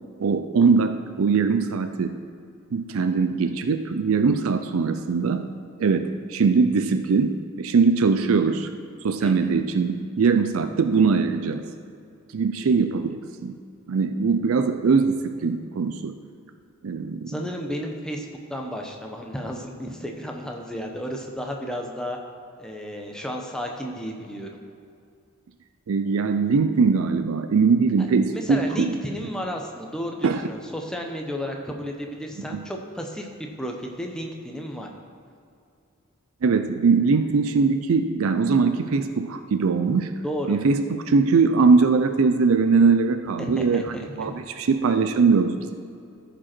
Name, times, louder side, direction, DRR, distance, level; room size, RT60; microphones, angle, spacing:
voice 1, 0.2-2.2 2.7-8.7 9.0-11.6 12.3-13.6 13.9-16.2 16.8-17.3 25.9-28.9 30.2-30.4 32.5-32.6 36.4-40.1 40.5-45.8, right 4 dB, 75° right, 8 dB, 0.4 m, -21 dB
voice 2, 9.2-9.5 17.3-22.2 22.6-24.5 28.3-33.3 33.6-34.9 40.2-40.6 43.6-44.0, equal, 5° left, 1 dB, 0.8 m, -32 dB
14.0 x 5.2 x 4.4 m, 2.5 s
head